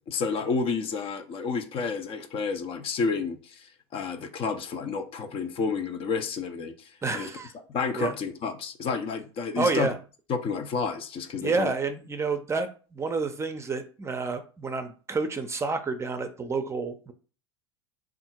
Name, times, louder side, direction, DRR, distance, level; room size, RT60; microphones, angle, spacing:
voice 1, 0.1-6.7 7.1-7.3 7.7-9.9 10.3-11.7, left 5 dB, 40° left, 0.7 m, -30 dB
voice 2, 7.0-7.5 7.9-8.1 9.6-9.9 11.4-17.1, right 4 dB, 20° right, 0.6 m, -29 dB
3.6 x 2.5 x 4.3 m
hypercardioid pair, 85°, 14 cm